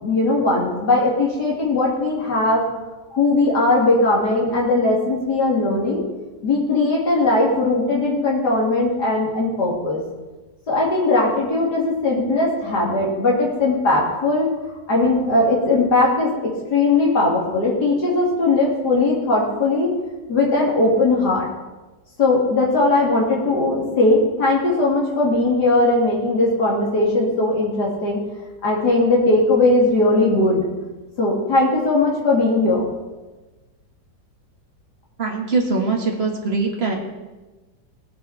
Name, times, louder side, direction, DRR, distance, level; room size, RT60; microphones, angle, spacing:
voice 1, 0.0-2.6 3.1-6.0 6.4-10.0 10.7-14.5 14.9-16.4 16.7-19.9 20.3-21.5 22.2-28.2 28.6-30.7 31.2-32.8, left 2 dB, 70° left, -3 dB, 3.5 m, -19 dB
voice 2, 35.2-36.9, right 3 dB, 35° right, 0 dB, 2.2 m, -22 dB
17.5 x 9.6 x 4.4 m, 1.2 s
omnidirectional pair, 1.9 m